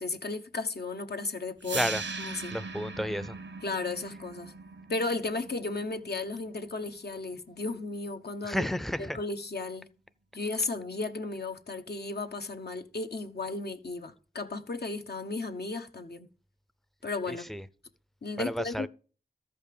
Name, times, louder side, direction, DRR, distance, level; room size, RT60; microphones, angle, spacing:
voice 1, 0.0-1.8 2.2-2.5 3.6-4.5 4.9-8.7 9.0-9.9 10.3-16.3 17.0-17.5 18.2-18.9, left 3 dB, 60° left, 1.1 m, -34 dB
sound 1, 1.6-7.7, right 4 dB, 90° right, 1.1 m, -40 dB
voice 2, 1.7-2.0 2.5-3.4 8.4-9.2 17.3-17.6 18.4-18.9, equal, ahead, 0.6 m, -32 dB
14.0 x 5.5 x 6.7 m
wide cardioid pair, 70°, 18 cm